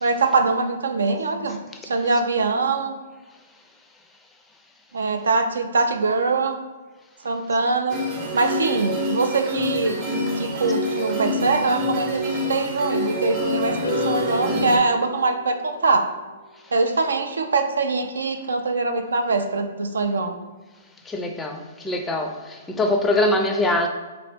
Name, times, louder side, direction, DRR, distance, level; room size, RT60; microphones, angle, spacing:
voice 1, 0.0-3.0 4.9-6.6 7.2-8.0 8.3-10.0 10.4-16.0 16.7-20.3, right 3 dB, 80° right, 6 dB, 0.4 m, -23 dB
sound 1, 7.9-14.8, left 1 dB, 35° right, 0.8 m, -26 dB
sound 2, 13.8-16.2, left 1 dB, 85° left, 0.4 m, -31 dB
voice 2, 21.1-23.9, left 1 dB, 10° left, 4 dB, 0.4 m, -23 dB
2.8 x 2.5 x 3.4 m, 1.3 s
hypercardioid pair, 125°, 0 cm